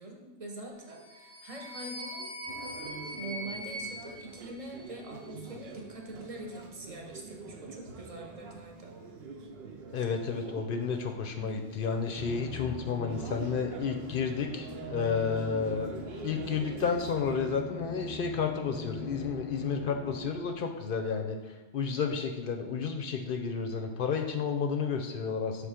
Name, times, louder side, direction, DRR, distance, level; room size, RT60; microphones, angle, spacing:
voice 1, 0.0-2.3 3.2-9.0 9.9-10.0, right 2 dB, 35° right, 1 dB, 0.8 m, -44 dB
sound 1, 0.9-5.2, equal, 90° right, 1.4 m, -42 dB
sound 2, 2.5-17.5, right 4 dB, 65° right, 0.9 m, -45 dB
voice 2, 9.9-15.9 16.2-25.7, left 5 dB, 60° left, 4 dB, 0.7 m, -31 dB
Musical instrument, 12.2-20.7, left 3 dB, 10° left, 0.6 m, -43 dB
5.7 x 3.4 x 4.9 m, 1.1 s
omnidirectional pair, 1.1 m